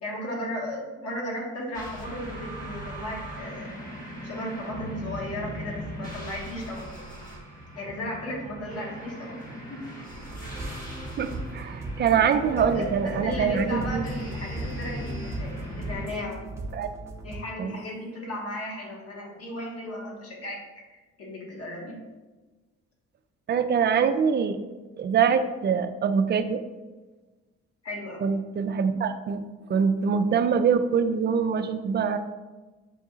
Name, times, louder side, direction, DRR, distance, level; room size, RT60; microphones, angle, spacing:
voice 1, 0.0-3.7 4.2-7.0 7.7-9.4 9.7-9.8 10.2-10.3 12.1-16.4 17.2-20.6 20.9-22.0 27.8-28.3, left 1 dB, 55° left, -2 dB, 1.4 m, -35 dB
sound 1, 1.7-16.1, right 1 dB, 25° left, 1.2 m, -39 dB
sound 2, 10.3-17.4, right 1 dB, 10° right, 0.8 m, -38 dB
voice 2, 11.2-14.1 16.7-16.9 17.6-17.7 23.5-24.6 25.0-26.6 28.2-29.4 29.7-32.2, right 6 dB, 35° right, 8 dB, 0.4 m, -24 dB
6.9 x 2.7 x 2.4 m, 1.2 s
cardioid pair, 90°, 30 cm